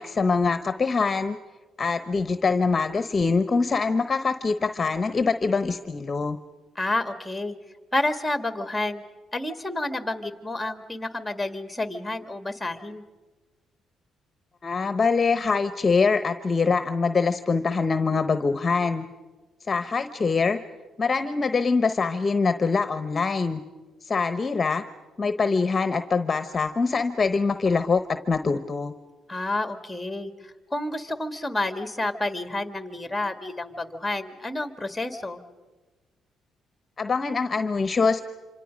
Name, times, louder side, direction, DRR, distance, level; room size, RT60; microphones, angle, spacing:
voice 1, 0.0-1.4 1.8-6.4 14.6-19.1 19.7-20.6 21.0-23.6 24.0-24.8 25.2-28.9 37.0-38.2, left 4 dB, 35° left, 10 dB, 0.9 m, -24 dB
voice 2, 6.8-7.6 7.9-9.0 9.3-13.0 29.3-30.3 30.7-35.4, left 2 dB, 5° left, 8 dB, 1.9 m, -29 dB
27.0 x 26.0 x 5.2 m, 1.2 s
cardioid pair, 90°, 0 cm